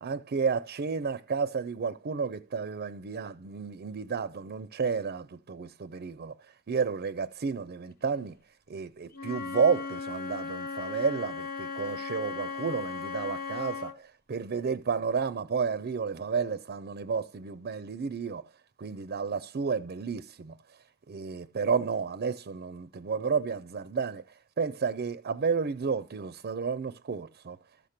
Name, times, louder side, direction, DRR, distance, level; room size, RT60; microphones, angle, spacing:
voice 1, 0.0-6.3 6.7-8.4 8.7-18.4 18.8-20.6 21.1-24.2 24.6-27.6, right 5 dB, 45° right, 0.5 m, -31 dB
Wind instrument woodwind instrument, 9.1-14.0, left 5 dB, 45° left, 1.0 m, -37 dB
13.5 x 5.8 x 6.6 m
head